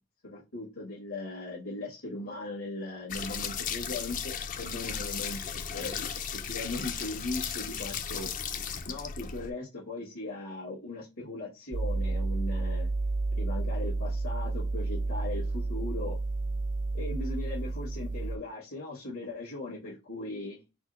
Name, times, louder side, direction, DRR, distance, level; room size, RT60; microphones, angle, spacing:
voice 1, 0.2-8.3 8.8-12.9 13.3-16.2 16.9-20.6, left 2 dB, 80° left, -6 dB, 1.6 m, -38 dB
sound 1, 3.1-9.5, left 7 dB, 40° left, 0.4 m, -35 dB
sound 2, 11.7-18.4, right 2 dB, 35° right, 0.4 m, -31 dB
4.2 x 2.0 x 3.9 m, 0.27 s
head